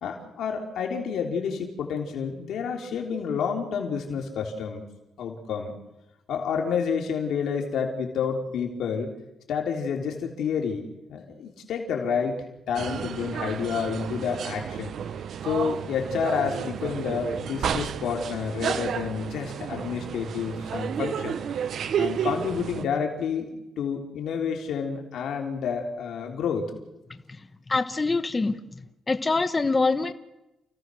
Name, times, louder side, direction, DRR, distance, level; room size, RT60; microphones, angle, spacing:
voice 1, 0.0-4.8 5.2-5.7 6.3-9.1 9.5-15.0 15.4-21.4 22.0-26.6, left 6 dB, 80° left, 2 dB, 3.3 m, -29 dB
sound 1, 12.7-22.8, right 8 dB, 65° right, 0.9 m, -31 dB
voice 2, 27.7-28.6 29.1-30.1, left 3 dB, 25° left, 9 dB, 1.2 m, -24 dB
29.5 x 16.0 x 6.3 m, 0.95 s
cardioid pair, 115°, 0 cm